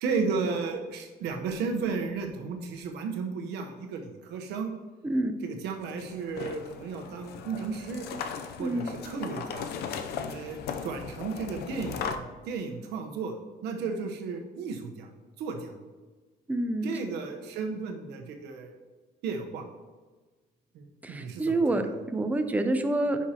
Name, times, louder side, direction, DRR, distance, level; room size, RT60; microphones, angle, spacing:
voice 1, 0.0-4.7 5.4-8.1 8.6-9.7 10.3-10.6 10.8-12.0 12.5-13.3 13.6-15.1 15.4-15.7 16.8-18.7 19.2-19.7 20.7-21.9, right 4 dB, 80° right, 4 dB, 1.1 m, -34 dB
voice 2, 5.0-5.4 8.6-8.9 16.5-16.9 21.0-21.8 22.1-23.2, right 2 dB, 10° right, 7 dB, 0.6 m, -27 dB
sound 1, 5.6-12.2, left 7 dB, 75° left, 0.6 m, -38 dB
9.6 x 5.7 x 2.9 m, 1.3 s
cardioid pair, 110°, 17 cm